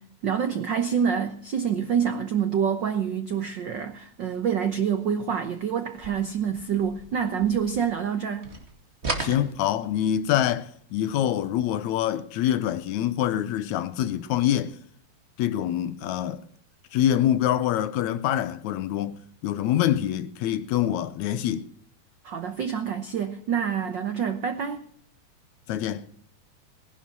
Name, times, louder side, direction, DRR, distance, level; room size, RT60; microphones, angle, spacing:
voice 1, 0.0-8.5 22.2-24.8, right 7 dB, 75° right, 1.0 m, -27 dB
sound 1, 5.9-8.2 8.4-10.2, right 3 dB, 25° right, 2.2 m, -36 dB
voice 2, 9.2-14.8 15.4-16.4 16.9-21.7 25.7-26.1, left 11 dB, 80° left, 2.1 m, -25 dB
19.0 x 11.5 x 6.1 m
omnidirectional pair, 3.4 m